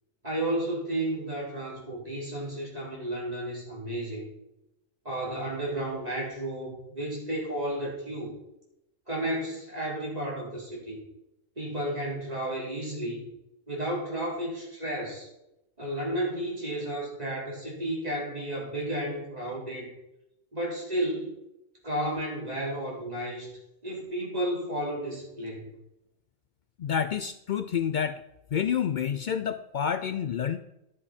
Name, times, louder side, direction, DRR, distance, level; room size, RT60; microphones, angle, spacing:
voice 1, 0.2-4.2 5.1-8.4 9.1-11.0 11.6-13.2 13.7-15.3 15.8-19.9 20.5-21.3 21.8-23.5 23.8-25.7, right 1 dB, 30° right, -5 dB, 3.7 m, -32 dB
voice 2, 26.8-28.2 28.5-30.6, left 8 dB, 90° left, 10 dB, 0.4 m, -28 dB
12.0 x 7.5 x 4.2 m, 0.89 s
omnidirectional pair, 1.4 m